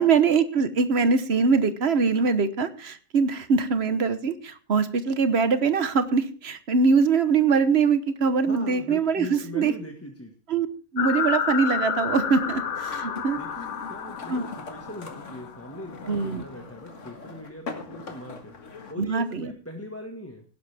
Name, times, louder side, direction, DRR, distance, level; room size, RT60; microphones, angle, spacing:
voice 1, 0.0-9.7 10.5-10.7 10.9-13.4 14.3-14.5 16.1-16.4 19.0-19.5, right 5 dB, 50° right, 12 dB, 1.1 m, -23 dB
voice 2, 8.4-10.3 13.0-20.4, left 1 dB, 10° left, 2 dB, 1.5 m, -40 dB
sound 1, 11.0-15.7, left 7 dB, 75° left, 1.5 m, -30 dB
sound 2, 12.0-18.9, left 4 dB, 60° left, 2.0 m, -42 dB
17.0 x 11.0 x 3.4 m, 0.38 s
omnidirectional pair, 1.5 m